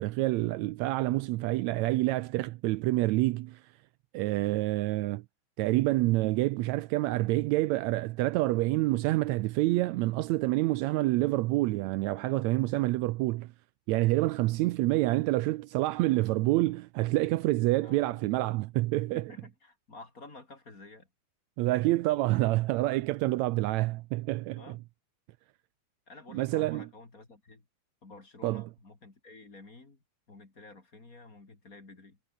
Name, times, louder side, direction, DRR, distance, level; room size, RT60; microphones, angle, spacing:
voice 1, 0.0-3.6 4.1-5.2 5.6-13.5 13.9-19.3 21.6-24.7 26.3-26.9 28.4-28.7, right 18 dB, 80° right, 1.8 m, -27 dB
voice 2, 17.8-18.2 19.0-21.1 24.6-24.8 26.1-27.6 28.0-32.2, left 3 dB, 30° left, 3.6 m, -51 dB
omnidirectional pair, 3.4 m